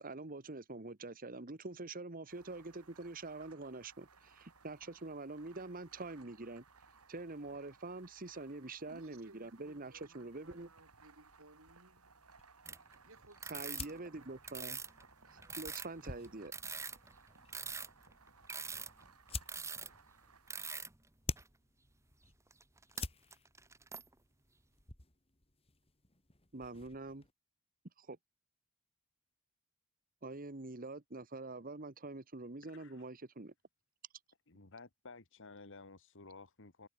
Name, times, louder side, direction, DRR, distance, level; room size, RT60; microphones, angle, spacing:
voice 1, 0.0-6.6 7.1-10.7 13.5-14.8 15.3-16.5 26.5-27.3 28.0-28.2 30.2-33.5, right 2 dB, 40° right, 1.3 m, -45 dB
sound 1, 2.3-20.6, right 4 dB, 85° right, 5.4 m, -63 dB
voice 2, 8.8-12.1 13.0-14.3, right 2 dB, 65° right, 5.8 m, -61 dB
sound 2, 10.4-27.3, left 3 dB, 25° left, 3.2 m, -51 dB
sound 3, 12.6-12.9 13.4-15.0 15.4-20.0 20.5-21.0 21.3-21.5 22.5-23.0 23.3-24.1, right 5 dB, 15° right, 1.0 m, -44 dB
voice 3, 32.6-33.1 34.5-36.9, left 3 dB, 60° left, 1.7 m, -54 dB
head